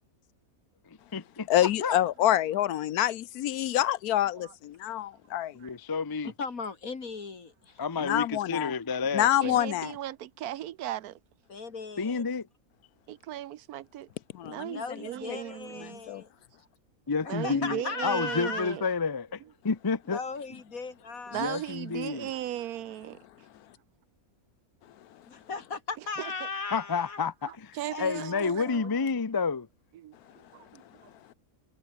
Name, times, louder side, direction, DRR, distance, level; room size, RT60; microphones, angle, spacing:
voice 1, 0.9-2.0 5.5-6.3 7.8-9.6 12.0-12.5 17.1-20.2 21.3-22.3 26.7-29.7, left 5 dB, 25° left, 0.5 m, -30 dB
voice 2, 1.5-5.6 8.0-8.7 9.1-9.9 14.3-14.8 15.3-15.4 16.1-16.2, left 12 dB, 85° left, 1.2 m, -27 dB
voice 3, 6.4-7.8 11.5-12.2 14.7-16.3 17.2-18.6 20.1-21.5 25.2-27.2 27.9-29.0, left 4 dB, 65° left, 2.9 m, -37 dB
voice 4, 9.4-11.2 13.1-14.1 14.4-16.0 17.3-18.9 21.3-23.2 26.2-26.5 27.5-28.9 29.9-31.1, right 12 dB, 80° right, 1.2 m, -37 dB
omnidirectional pair, 1.6 m